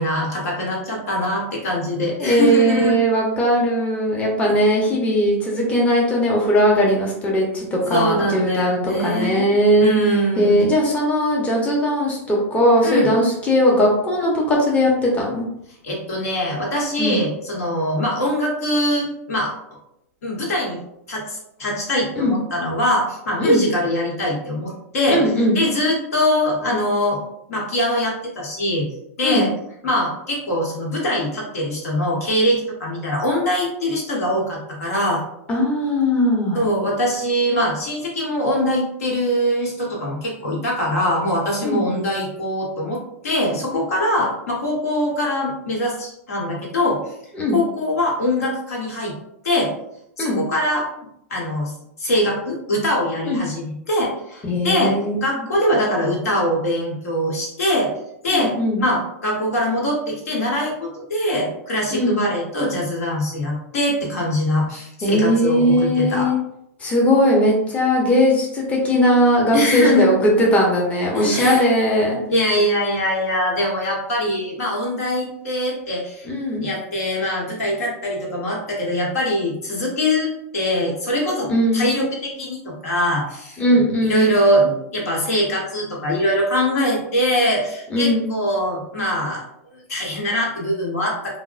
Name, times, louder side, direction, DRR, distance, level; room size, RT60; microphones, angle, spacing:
voice 1, 0.0-2.9 4.5-4.6 7.9-9.5 9.8-10.8 12.8-13.1 15.8-19.5 20.2-20.8 21.1-25.2 25.5-27.2 27.5-28.9 29.2-29.5 29.8-35.2 36.5-47.0 47.5-49.1 49.4-49.7 50.2-50.9 51.3-51.7 52.0-54.9 55.2-57.9 58.2-66.3 69.5-70.1 71.1-71.6 72.3-76.3 76.6-83.6 84.0-89.4 89.7-91.4, left 1 dB, 75° left, -2 dB, 1.1 m, -22 dB
voice 2, 2.2-9.9 10.4-15.4 17.0-17.2 22.2-22.3 23.4-23.6 25.1-25.6 29.2-29.5 35.5-36.6 41.6-41.8 47.3-47.6 50.2-50.4 53.3-53.4 54.4-55.2 58.3-58.8 61.9-62.2 65.0-66.4 66.8-72.2 76.2-76.7 81.5-81.8 83.6-84.3 87.9-88.3, equal, 15° left, -3 dB, 0.8 m, -19 dB
3.5 x 2.1 x 2.4 m, 0.77 s
hypercardioid pair, 120°, 8 cm